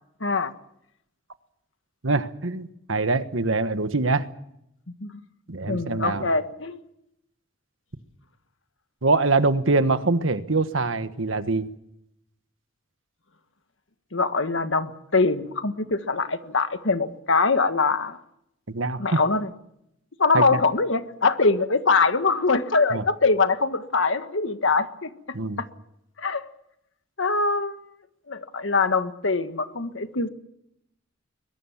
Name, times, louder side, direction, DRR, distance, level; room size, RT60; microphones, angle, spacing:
voice 1, 0.2-0.5 5.0-5.1 5.7-6.8 14.1-18.2 19.0-19.5 20.2-25.1 26.2-26.5 27.2-27.8 28.3-30.3, left 4 dB, 80° left, 9 dB, 1.6 m, -23 dB
voice 2, 2.0-4.3 5.5-6.3 9.0-11.7 18.7-19.2 20.3-20.6 22.9-23.0 25.3-25.6, right 3 dB, 90° right, 11 dB, 1.4 m, -24 dB
23.0 x 22.0 x 7.3 m, 0.79 s
head